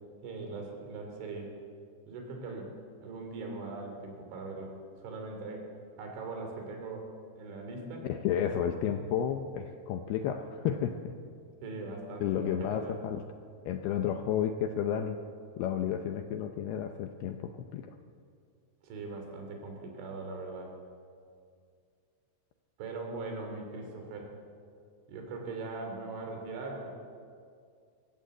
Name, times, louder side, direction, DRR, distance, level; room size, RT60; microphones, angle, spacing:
voice 1, 0.2-1.5 2.1-2.7 3.0-4.7 5.0-5.7 6.0-7.1 7.4-8.1 11.6-13.0 18.8-20.8 22.8-24.3 25.1-27.0, right 3 dB, 75° right, 3 dB, 5.5 m, -40 dB
voice 2, 8.0-11.1 12.2-13.2 13.7-15.2 15.6-17.9, left 9 dB, 80° left, 6 dB, 2.4 m, -32 dB
24.0 x 15.5 x 8.0 m, 2.3 s
omnidirectional pair, 5.5 m